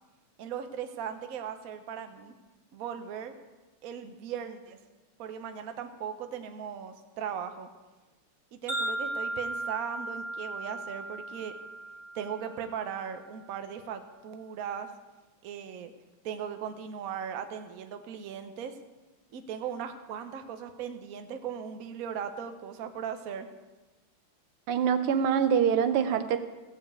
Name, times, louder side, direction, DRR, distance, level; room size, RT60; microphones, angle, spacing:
voice 1, 0.4-2.3 2.7-3.3 3.8-4.8 5.2-7.7 8.5-11.5 12.1-14.9 15.4-15.9 16.2-18.8 19.3-23.5, right 8 dB, 55° right, 7 dB, 1.0 m, -38 dB
Wind chime, 8.7-13.0, right 2 dB, 15° right, 2.0 m, -36 dB
voice 2, 24.7-26.4, right 7 dB, 85° right, 9 dB, 1.7 m, -25 dB
15.5 x 5.1 x 8.2 m, 1.2 s
omnidirectional pair, 2.4 m